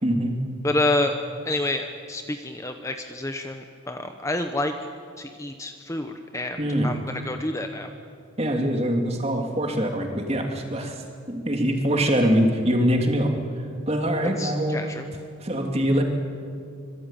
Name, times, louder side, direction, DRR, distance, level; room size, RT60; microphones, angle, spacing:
voice 1, 0.0-0.4 6.6-6.9 8.4-13.3 13.9-15.0 15.4-16.0, equal, 30° right, 3 dB, 2.9 m, -23 dB
voice 2, 0.6-1.2 1.5-4.7 5.2-7.9 14.4-15.1, left 2 dB, 15° left, 6 dB, 1.0 m, -28 dB
25.5 x 22.5 x 9.1 m, 2.4 s
head